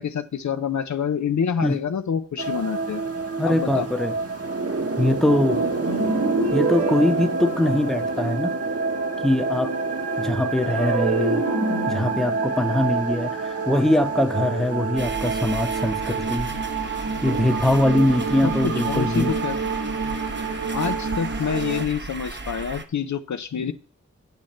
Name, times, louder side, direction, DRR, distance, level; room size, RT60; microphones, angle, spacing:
voice 1, 0.0-3.0 3.4-3.9 18.4-19.6 20.7-23.7, left 7 dB, 70° left, 11 dB, 0.6 m, -27 dB
sound 1, 2.4-21.8, right 4 dB, 50° right, 1.2 m, -28 dB
voice 2, 3.4-4.1 5.0-5.6 6.5-8.6 9.2-9.7 10.2-11.5 11.9-16.5 17.2-19.3, left 1 dB, ahead, 7 dB, 0.9 m, -22 dB
sound 2, 5.8-8.2 10.6-14.0, right 2 dB, 80° right, 2.4 m, -27 dB
sound 3, 15.0-22.8, right 3 dB, 35° right, 0.8 m, -35 dB
9.3 x 6.4 x 4.3 m, 0.42 s
wide cardioid pair, 45°, 30 cm